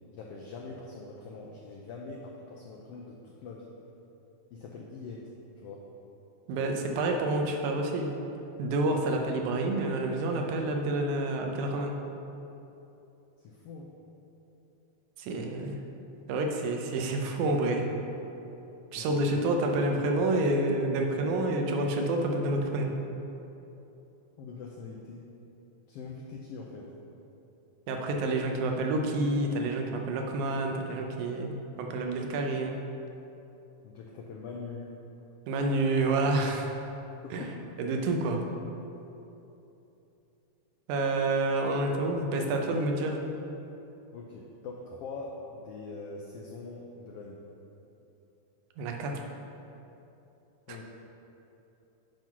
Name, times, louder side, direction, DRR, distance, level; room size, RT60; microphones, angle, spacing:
voice 1, 0.1-3.7 4.5-5.3 5.6-5.8 13.4-13.9 18.9-19.4 24.4-25.2 25.9-26.9 33.8-34.9 37.2-37.6 44.1-47.4 50.7-50.8, left 4 dB, 80° left, -1 dB, 1.3 m, -43 dB
voice 2, 6.5-8.1 8.6-12.0 15.2-15.8 16.3-17.9 18.9-22.9 27.9-32.8 35.5-36.7 37.3-37.5 37.8-38.4 40.9-43.2 48.8-49.2 50.7-50.8, right 2 dB, 85° right, 2 dB, 2.2 m, -28 dB
7.8 x 4.5 x 5.9 m, 2.9 s
omnidirectional pair, 3.3 m